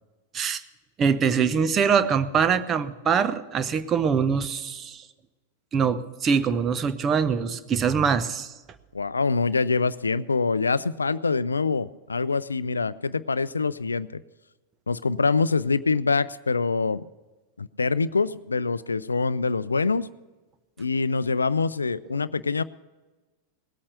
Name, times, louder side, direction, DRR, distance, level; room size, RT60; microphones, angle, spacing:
voice 1, 1.0-5.0 5.7-8.5, right 6 dB, 25° right, 12 dB, 0.8 m, -23 dB
voice 2, 8.9-14.2 14.9-17.0 17.6-20.1 20.8-22.6, left 4 dB, 75° left, 18 dB, 0.4 m, -25 dB
18.5 x 8.6 x 6.7 m, 1.2 s
figure-of-eight pair, 90°, 0 cm